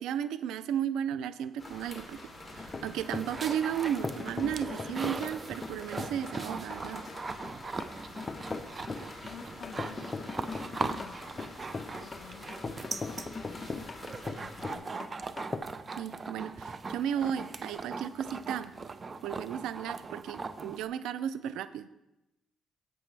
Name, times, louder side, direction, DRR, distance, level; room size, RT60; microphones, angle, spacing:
voice 1, 0.0-2.2 2.5-7.0 16.0-18.7 19.2-21.9, right 9 dB, 90° right, 14 dB, 0.4 m, -34 dB
sound 1, 1.6-14.7, left 1 dB, 15° left, 3.1 m, -48 dB
sound 2, 2.6-15.6, left 3 dB, 30° left, 0.7 m, -39 dB
sound 3, 2.8-20.8, right 4 dB, 35° right, 0.6 m, -40 dB
voice 2, 9.2-10.3 10.8-12.6 12.9-15.1, left 6 dB, 70° left, 4 dB, 1.2 m, -51 dB
13.0 x 8.7 x 3.3 m, 0.92 s
cardioid pair, 90°, 0 cm